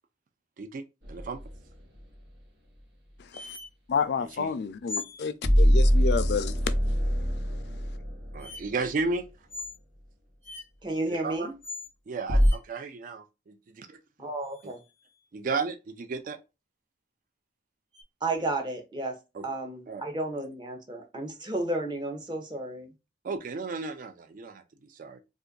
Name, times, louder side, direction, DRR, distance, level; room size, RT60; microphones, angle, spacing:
voice 1, 0.6-1.4 4.2-4.5 8.3-9.3 11.1-11.5 12.1-13.5 14.6-14.7 15.3-16.4 19.3-19.5 19.9-20.0 23.2-25.2, right 4 dB, 50° right, 0.4 m, -34 dB
sound 1, 1.0-1.6 5.4-8.8 12.3-12.5, equal, 75° right, 1.0 m, -23 dB
voice 2, 3.2-3.6 3.9-6.7, left 5 dB, 65° left, 0.4 m, -30 dB
sound 2, 3.3-3.7 4.9-5.2 7.5-7.6 8.4-8.6 9.5-9.8 10.4-10.7 11.6-11.9 12.4-12.6 14.4-15.0 17.9-18.0, left 3 dB, 15° left, 0.5 m, -39 dB
voice 3, 10.8-11.5 14.2-14.8 18.2-19.2 19.4-22.9, right 2 dB, 25° right, 0.7 m, -32 dB
2.6 x 2.4 x 3.7 m
head